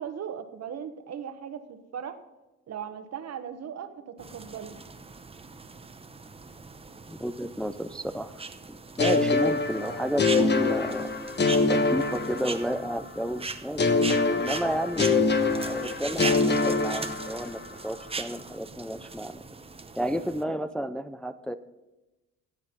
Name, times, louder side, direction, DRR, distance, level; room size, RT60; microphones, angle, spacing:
voice 1, 0.0-2.2 2.7-4.8, right 8 dB, 55° right, 9 dB, 1.3 m, -38 dB
sound 1, 4.2-20.4, right 3 dB, 20° right, 0.8 m, -39 dB
voice 2, 7.1-8.3 8.7-11.1 11.6-13.9 14.3-15.1 15.7-19.4 20.0-21.6, equal, 5° left, 9 dB, 0.5 m, -32 dB
sound 2, 9.0-12.9 13.8-17.6, left 3 dB, 35° left, 1.2 m, -25 dB
15.5 x 7.5 x 5.3 m, 1.0 s
cardioid pair, 90°, 30 cm